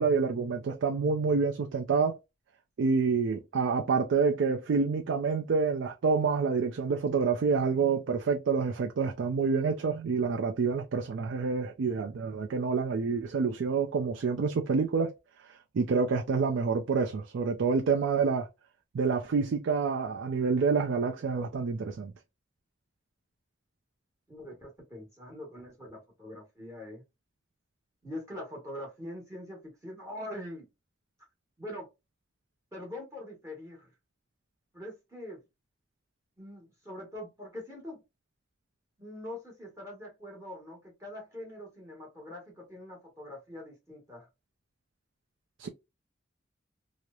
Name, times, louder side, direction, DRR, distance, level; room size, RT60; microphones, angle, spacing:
voice 1, 0.0-2.2 2.8-15.1 15.7-18.5 18.9-22.1 45.6-45.7, right 5 dB, 80° right, 0.4 m, -27 dB
voice 2, 24.3-27.0 28.0-30.7 31.6-31.9 32.7-33.9 34.7-35.4 36.4-38.0 39.0-44.3, left 1 dB, 15° right, 1.0 m, -43 dB
2.9 x 2.0 x 2.3 m
head